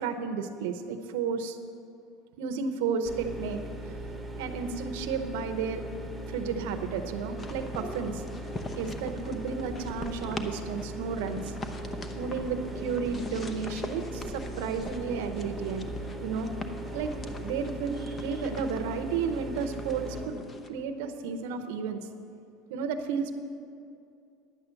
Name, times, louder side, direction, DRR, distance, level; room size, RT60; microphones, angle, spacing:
voice 1, 0.0-1.6 2.4-3.6 4.4-5.8 6.3-8.2 8.7-11.5 12.1-15.9 16.2-16.5 16.9-17.1 17.4-20.4 20.7-22.0 22.7-23.3, right 5 dB, 80° right, 7 dB, 0.8 m, -32 dB
sound 1, 3.0-20.3, right 1 dB, ahead, 1.7 m, -39 dB
sound 2, 7.4-20.7, left 2 dB, 25° left, 0.9 m, -42 dB
10.5 x 8.2 x 6.9 m, 2.5 s
supercardioid pair, 125°, 0 cm